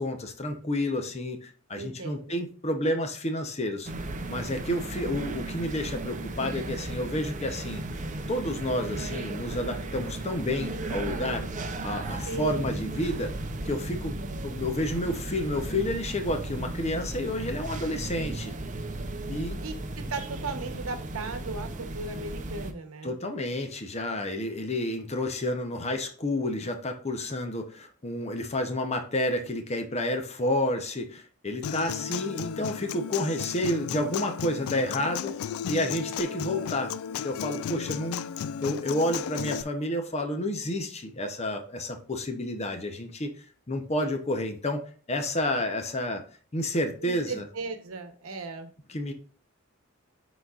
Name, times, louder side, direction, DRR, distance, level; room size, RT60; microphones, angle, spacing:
voice 1, 0.0-3.9 4.3-7.8 8.3-11.5 11.8-13.3 13.7-14.2 14.4-18.5 19.3-19.6 23.0-35.4 35.7-38.2 38.6-46.2 46.5-47.4 48.9-49.1, left 1 dB, 30° left, 5 dB, 0.7 m, -30 dB
voice 2, 1.7-2.4 12.2-12.8 19.6-23.1 47.0-48.7, right 3 dB, 80° right, 7 dB, 1.0 m, -37 dB
sound 1, 3.9-22.7, right 2 dB, 35° right, 0.6 m, -35 dB
Human voice / Acoustic guitar, 31.6-39.6, left 8 dB, 75° left, 0.3 m, -34 dB
10.5 x 4.0 x 2.4 m, 0.41 s
head